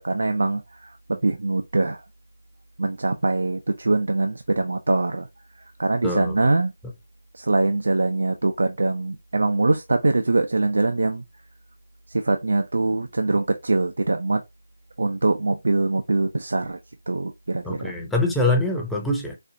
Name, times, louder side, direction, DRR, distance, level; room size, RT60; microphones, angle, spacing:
voice 1, 0.0-2.0 2.8-5.3 5.6-6.7 7.3-11.2 12.1-14.4 15.0-16.8 17.1-17.9, right 2 dB, 75° right, 0.4 m, -23 dB
voice 2, 6.0-6.4 17.6-19.4, left 2 dB, 5° left, 0.7 m, -24 dB
4.2 x 2.4 x 2.6 m
figure-of-eight pair, 155°, 0 cm